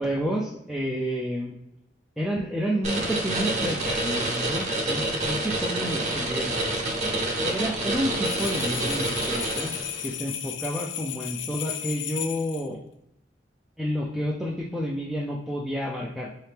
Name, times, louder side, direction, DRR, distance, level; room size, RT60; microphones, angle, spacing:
voice 1, 0.0-1.5 2.2-6.6 7.4-9.8 10.0-12.8 13.8-16.3, equal, ahead, -5 dB, 0.4 m, -30 dB
sound 1, 2.8-10.1, right 2 dB, 40° right, 0.9 m, -28 dB
sound 2, 8.2-12.7, left 10 dB, 85° left, 0.4 m, -34 dB
4.1 x 2.8 x 3.4 m, 0.80 s
head